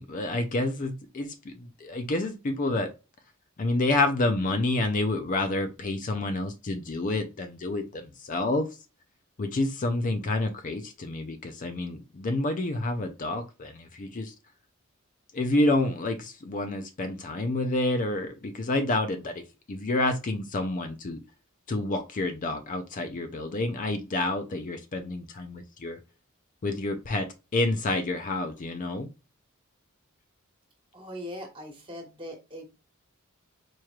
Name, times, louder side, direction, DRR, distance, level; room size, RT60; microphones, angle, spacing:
voice 1, 0.0-2.9 3.6-8.7 9.4-14.3 15.3-19.4 19.7-21.2 21.7-26.0 26.6-29.1, left 2 dB, 40° left, 0.5 m, -29 dB
voice 2, 30.9-32.7, equal, 25° right, 1.4 m, -40 dB
4.5 x 3.0 x 2.3 m
head